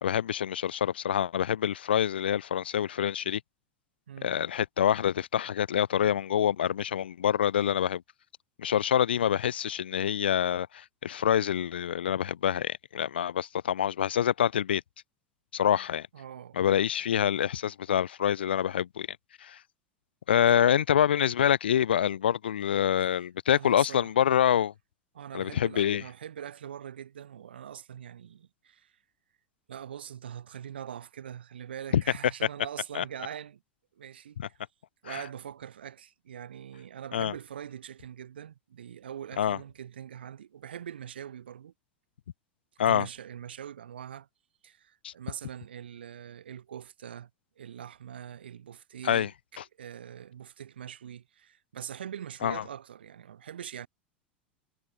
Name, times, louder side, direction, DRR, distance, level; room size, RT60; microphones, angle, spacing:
voice 1, 0.0-3.4 4.2-8.0 8.6-14.8 15.5-16.1 16.5-19.1 19.4-19.6 20.3-24.7 25.3-26.0 31.9-32.0 32.9-33.0 34.4-34.5 35.1-35.2 37.1-37.3 39.4-39.6 42.8-43.1 45.0-45.1 49.0-49.3 52.4-52.6, left 9 dB, 70° left, 1.2 m, -26 dB
voice 2, 16.1-16.8 20.5-20.6 23.0-23.1 23.5-24.1 25.1-28.9 29.7-33.6 33.9-34.6 35.0-41.7 42.9-44.3 44.6-47.3 47.6-49.3 49.8-53.9, right 9 dB, 70° right, 4.8 m, -43 dB
figure-of-eight pair, 85°, 6 cm